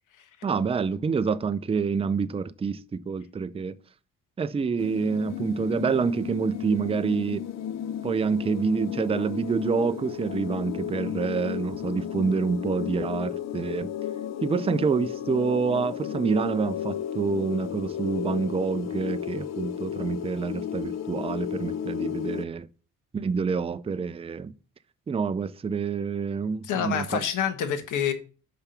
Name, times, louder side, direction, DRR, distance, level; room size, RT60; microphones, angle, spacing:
voice 1, 0.4-3.7 4.4-7.5 8.0-13.9 14.4-22.7 23.1-24.5 25.1-27.2, right 5 dB, 20° right, 0.5 m, -27 dB
sound 1, 4.8-22.4, left 10 dB, 60° left, 0.8 m, -33 dB
voice 2, 26.6-28.1, left 8 dB, 85° left, 1.2 m, -27 dB
5.9 x 5.2 x 5.7 m
cardioid pair, 90°, 30 cm